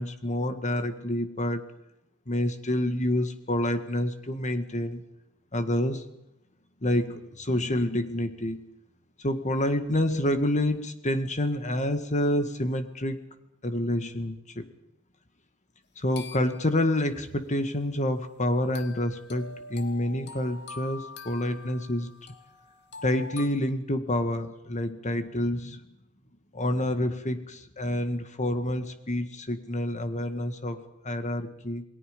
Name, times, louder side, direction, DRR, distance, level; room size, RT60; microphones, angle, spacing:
voice 1, 0.0-1.7 2.3-5.0 5.5-6.0 6.8-8.6 9.2-13.2 13.6-14.7 16.0-22.1 23.0-25.8 26.5-31.8, left 1 dB, 35° left, 8 dB, 1.9 m, -28 dB
sound 1, 16.2-16.8 18.7-23.5, left 3 dB, 55° left, 2.4 m, -44 dB
29.0 x 21.0 x 5.3 m, 0.84 s
head